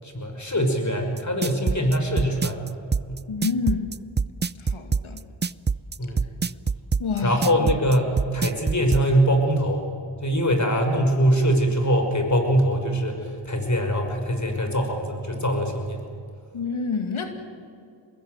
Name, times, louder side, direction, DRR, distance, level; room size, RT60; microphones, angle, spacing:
voice 1, 0.0-2.6 3.1-3.2 6.0-6.2 7.2-9.9 10.2-16.0, equal, 35° left, 4 dB, 5.9 m, -23 dB
sound 1, 1.2-9.1, right 5 dB, 25° right, 0.5 m, -24 dB
voice 2, 3.3-3.9 4.6-5.2 7.0-7.4 16.5-17.3, left 5 dB, 80° left, 5 dB, 2.4 m, -27 dB
25.0 x 21.0 x 8.0 m, 2.4 s
cardioid pair, 55°, 48 cm